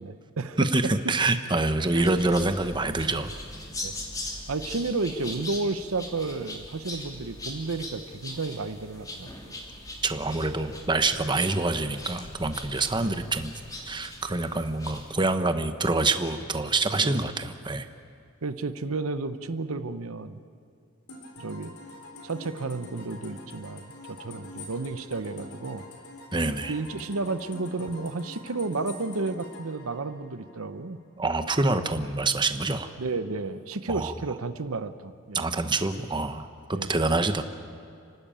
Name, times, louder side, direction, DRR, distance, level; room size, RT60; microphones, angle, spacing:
voice 1, 0.0-0.6 1.9-2.1 3.8-3.9 4.5-9.3 13.0-13.2 17.0-17.2 18.4-20.4 21.4-21.7 22.2-25.9 26.5-31.0 33.0-35.5 36.7-36.9, right 3 dB, 70° right, 11 dB, 0.9 m, -32 dB
voice 2, 0.6-3.3 10.0-13.5 13.8-17.9 26.3-26.7 31.2-32.9 33.9-34.1 35.3-37.4, right 2 dB, 20° right, 8 dB, 0.9 m, -26 dB
sound 1, 1.9-15.4, left 1 dB, 15° left, 3.1 m, -41 dB
sound 2, 21.1-30.8, left 2 dB, 85° left, 3.6 m, -45 dB
29.5 x 12.5 x 8.9 m, 2.4 s
head